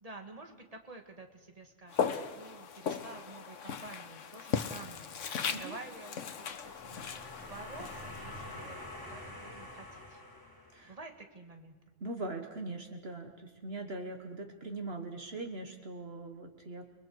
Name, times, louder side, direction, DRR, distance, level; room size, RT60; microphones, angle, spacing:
voice 1, 0.0-7.0 7.5-10.2 10.8-11.8, right 2 dB, 30° right, 4 dB, 1.9 m, -50 dB
Walk footsteps, 1.9-9.0, left 7 dB, 85° left, 1.3 m, -38 dB
sound 1, 6.4-11.1, left 1 dB, 15° left, 2.6 m, -47 dB
voice 2, 12.0-16.9, right 2 dB, 55° right, 5 dB, 1.6 m, -41 dB
30.0 x 21.0 x 4.7 m, 1.3 s
omnidirectional pair, 1.2 m